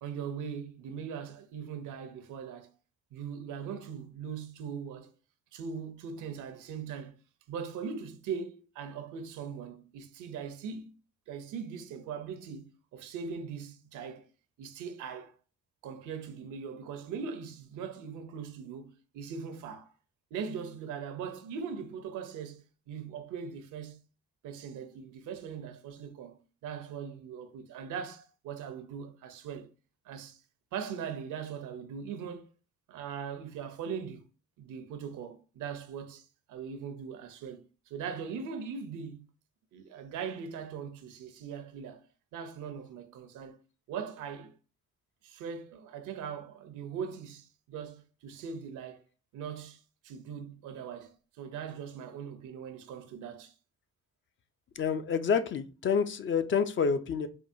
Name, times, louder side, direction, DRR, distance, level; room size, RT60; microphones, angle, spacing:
voice 1, 0.0-2.7 3.1-5.1 5.5-7.2 7.5-10.9 11.3-14.3 14.6-15.3 15.8-19.9 20.3-24.0 24.4-29.7 30.0-30.4 30.7-32.5 32.9-34.2 34.6-39.2 39.7-42.0 42.3-43.6 43.9-44.6 45.2-49.0 49.3-53.5, right 6 dB, 80° right, 0.7 m, -40 dB
voice 2, 54.8-57.3, left 6 dB, 40° left, 0.4 m, -28 dB
4.6 x 2.3 x 2.6 m
cardioid pair, 90°, 30 cm